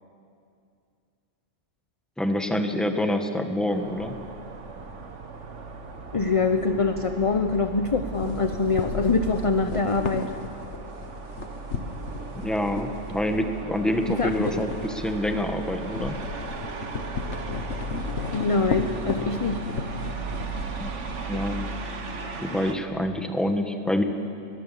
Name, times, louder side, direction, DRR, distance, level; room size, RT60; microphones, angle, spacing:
voice 1, 2.2-4.2 12.3-16.2 20.8-20.9 21.3-21.7 22.4-24.0, left 1 dB, ahead, 5 dB, 1.3 m, -26 dB
sound 1, 3.7-22.8, right 3 dB, 80° right, 1.7 m, -37 dB
voice 2, 6.1-10.3 14.1-14.6 18.3-19.6, left 4 dB, 30° left, 7 dB, 0.8 m, -24 dB
sound 2, 8.1-13.6 13.9-21.3, left 4 dB, 75° left, 1.6 m, -35 dB
22.0 x 19.0 x 7.5 m, 2.5 s
omnidirectional pair, 1.2 m